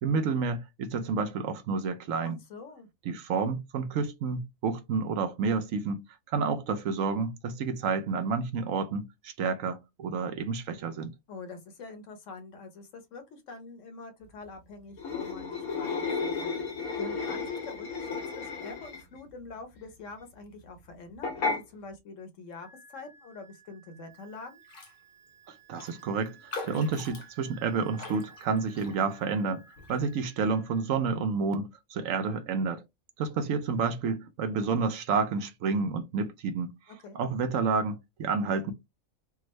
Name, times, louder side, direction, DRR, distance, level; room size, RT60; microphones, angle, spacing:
voice 1, 0.0-2.4 3.1-6.0 6.3-11.1 25.5-26.4 26.6-29.6 29.9-32.8 33.2-36.7 37.1-38.7, right 5 dB, 70° right, 1.0 m, -30 dB
voice 2, 2.2-2.9 11.3-24.6 33.3-33.4 36.9-37.2, left 4 dB, 65° left, 1.1 m, -45 dB
sound 1, 15.0-19.2 21.2-21.6, left 4 dB, 85° left, 1.4 m, -33 dB
Wind instrument woodwind instrument, 22.6-30.8, right 5 dB, 55° right, 0.4 m, -56 dB
Raindrop, 24.6-25.0 25.3-25.4 25.7-29.3 29.8-30.0, left 3 dB, 45° left, 0.8 m, -43 dB
3.5 x 2.0 x 3.0 m
omnidirectional pair, 1.5 m